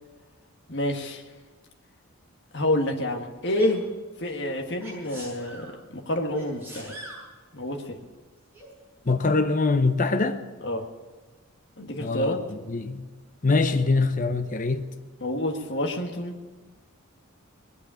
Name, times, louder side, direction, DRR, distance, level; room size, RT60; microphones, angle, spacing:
voice 1, 0.7-1.2 2.5-3.8 4.2-6.9 7.5-8.0 10.6-10.8 11.8-12.4 15.2-16.4, left 1 dB, 55° left, 1.6 m, -28 dB
Sneeze, 3.5-3.8 4.8-5.7 6.3-7.2 8.5-8.7, right 1 dB, 10° right, 7.0 m, -42 dB
voice 2, 9.1-10.4 12.0-12.3 12.7-13.1 13.4-14.8, left 3 dB, 40° left, 0.8 m, -23 dB
21.0 x 8.4 x 8.4 m
head